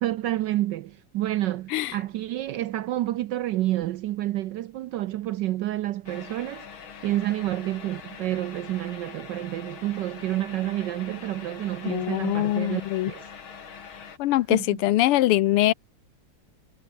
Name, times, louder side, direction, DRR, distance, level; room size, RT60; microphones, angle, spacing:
voice 1, 0.0-6.7 7.0-13.3 14.3-14.8, right 14 dB, 75° right, 1.0 m, -29 dB
sound 1, 6.1-14.2, left 6 dB, 65° left, 3.0 m, -43 dB
voice 2, 11.9-13.1 14.2-15.7, left 15 dB, 85° left, 1.7 m, -23 dB
omnidirectional pair, 2.4 m